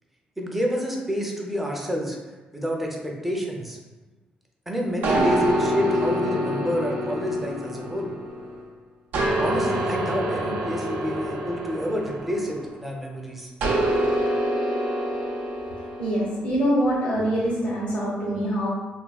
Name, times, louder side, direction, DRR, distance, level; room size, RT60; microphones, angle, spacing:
voice 1, 0.4-2.2 2.5-3.8 4.7-8.1 9.4-13.5, equal, 5° right, -1 dB, 0.5 m, -28 dB
sound 1, 5.0-8.6 9.1-12.8 13.6-16.3, equal, 80° right, 0.5 m, -26 dB
voice 2, 16.0-18.7, equal, 65° left, -7 dB, 0.8 m, -24 dB
3.3 x 2.2 x 2.3 m, 1.2 s
cardioid pair, 110°, 3 cm